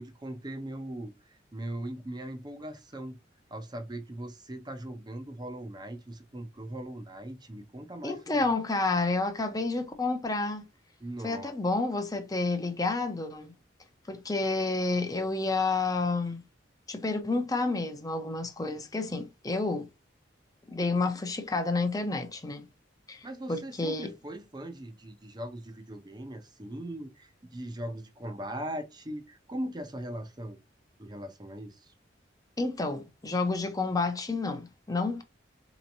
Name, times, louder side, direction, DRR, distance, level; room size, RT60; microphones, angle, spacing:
voice 1, 0.0-3.2 3.5-8.5 11.0-11.6 23.2-30.6 31.0-31.9, right 1 dB, 20° right, 0.7 m, -40 dB
voice 2, 8.0-10.6 11.2-13.5 14.1-16.4 16.9-19.9 20.7-22.7 23.1-24.1 32.6-35.2, left 3 dB, 20° left, 0.7 m, -30 dB
4.3 x 3.0 x 2.6 m
head